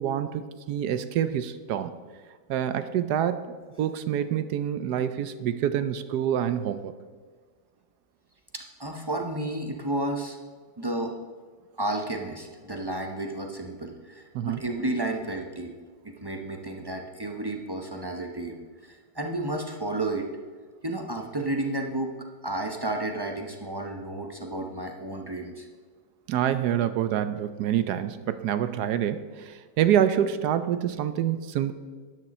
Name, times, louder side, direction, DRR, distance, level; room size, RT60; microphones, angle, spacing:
voice 1, 0.0-1.9 2.5-6.9 14.3-14.6 26.3-31.7, right 10 dB, 70° right, 12 dB, 1.1 m, -27 dB
voice 2, 8.5-10.4 10.8-11.1 11.8-15.7 16.2-18.6 18.8-20.3 20.8-22.1 22.4-25.7, right 2 dB, 30° right, 3 dB, 0.4 m, -32 dB
12.5 x 9.7 x 4.2 m, 1.5 s
omnidirectional pair, 2.0 m